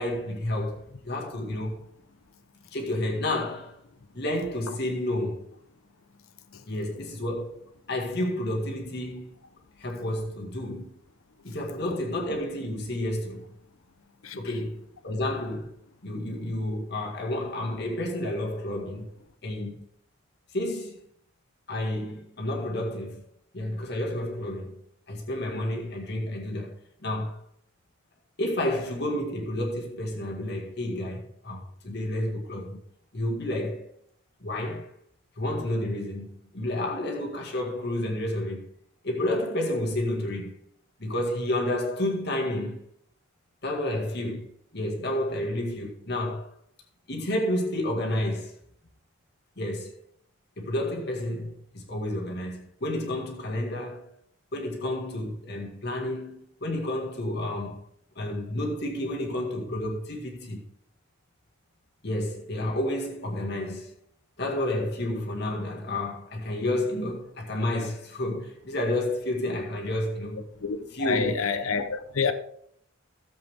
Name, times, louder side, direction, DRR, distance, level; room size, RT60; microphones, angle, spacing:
voice 1, 0.0-1.8 2.7-3.8 4.1-5.5 6.7-7.6 7.9-9.3 9.8-10.9 11.4-13.4 14.4-15.7 16.0-19.1 19.4-19.8 20.5-21.0 21.7-23.2 23.5-24.8 25.1-26.8 27.0-27.4 28.4-32.8 33.1-33.9 34.4-34.9 35.4-38.7 39.0-40.5 41.0-42.8 43.6-46.5 47.1-48.5 49.6-50.0 50.6-54.1 54.5-57.8 58.2-60.6 62.0-64.0 64.4-70.4 70.9-71.4, left 1 dB, 50° left, 1.9 m, -30 dB
voice 2, 14.2-14.5 70.6-72.3, left 5 dB, 90° left, 0.9 m, -28 dB
14.5 x 7.5 x 3.5 m
head